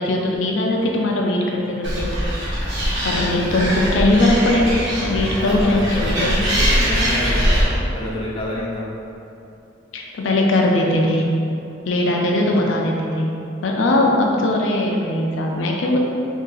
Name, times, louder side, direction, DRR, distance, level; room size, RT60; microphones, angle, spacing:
voice 1, 0.0-2.1 3.0-6.4 9.9-11.3 11.9-13.3 13.6-16.0, left 1 dB, 80° left, -1 dB, 0.4 m, -20 dB
Animal, 1.8-7.6, equal, 75° right, 1.1 m, -22 dB
voice 2, 5.3-8.9, left 1 dB, 25° left, -6 dB, 0.6 m, -28 dB
3.1 x 2.7 x 3.8 m, 2.7 s
head